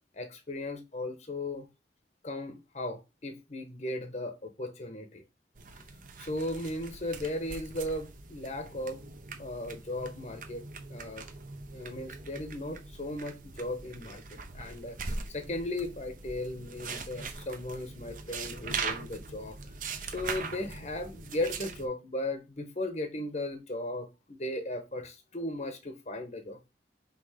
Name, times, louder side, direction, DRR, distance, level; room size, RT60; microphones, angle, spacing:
voice 1, 0.1-1.7 2.2-5.2 6.2-9.0 9.4-10.6 10.9-11.3 11.7-14.2 14.5-19.6 19.8-26.7, left 1 dB, 40° left, 0.9 m, -36 dB
sound 1, 5.5-21.9, right 4 dB, 45° right, 0.8 m, -41 dB
5.7 x 3.6 x 4.9 m
head